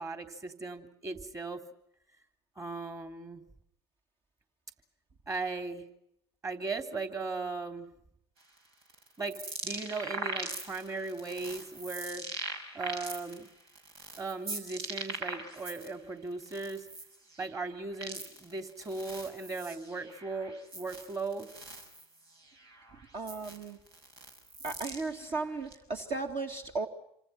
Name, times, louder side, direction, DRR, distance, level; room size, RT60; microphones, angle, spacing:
voice 1, 0.0-1.6 2.6-3.4 5.3-5.9 6.4-7.9 9.2-12.2 12.7-13.5 14.2-16.8 17.4-21.5, right 3 dB, 25° right, 7 dB, 3.3 m, -37 dB
sound 1, 8.4-15.9 16.3-25.8, right 2 dB, 80° right, 5.7 m, -42 dB
voice 2, 23.1-23.8 24.6-26.9, right 3 dB, 45° right, 3 dB, 2.4 m, -35 dB
27.5 x 25.5 x 6.0 m, 0.76 s
hypercardioid pair, 75°, 13 cm